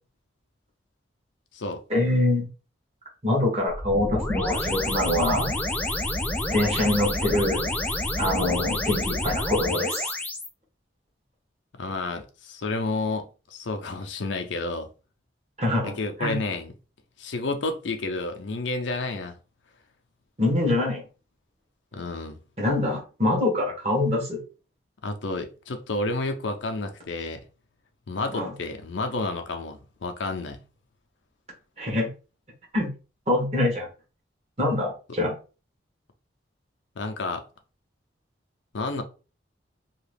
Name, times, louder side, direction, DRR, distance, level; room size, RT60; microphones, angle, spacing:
voice 1, 1.9-2.5 3.2-5.5 6.5-7.7 8.2-10.1 15.6-16.4 20.4-21.0 22.6-24.4 28.3-28.5 31.8-32.1 32.7-32.9 33.3-33.9 34.6-35.3, left 1 dB, 35° right, 1.2 m, -24 dB
sound 1, 3.7-10.5, left 1 dB, 10° left, 0.3 m, -28 dB
voice 2, 11.7-14.9 15.8-16.7 17.2-19.4 21.9-22.4 25.0-27.4 28.1-30.6 37.0-37.4 38.7-39.0, left 2 dB, 75° left, 0.5 m, -30 dB
2.8 x 2.4 x 3.3 m
head